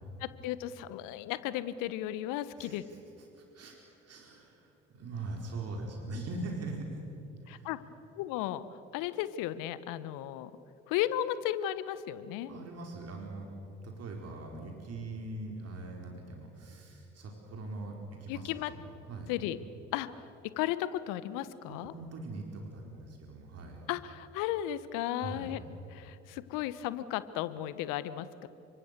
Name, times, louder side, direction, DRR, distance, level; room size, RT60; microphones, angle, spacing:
voice 1, 0.2-2.8 7.5-7.8 8.2-10.5 10.9-12.5 18.3-18.7 19.3-19.6 19.9-20.1 20.6-21.9 23.9-25.6 25.9-28.5, left 13 dB, 65° left, 15 dB, 1.3 m, -35 dB
voice 2, 2.6-3.8 4.0-7.0 7.4-7.7 12.5-13.5 13.8-18.6 19.0-19.3 21.6-23.9 25.2-25.6, right 2 dB, 45° right, 1 dB, 4.9 m, -42 dB
29.5 x 25.0 x 6.9 m, 3.0 s
hypercardioid pair, 60°, 35 cm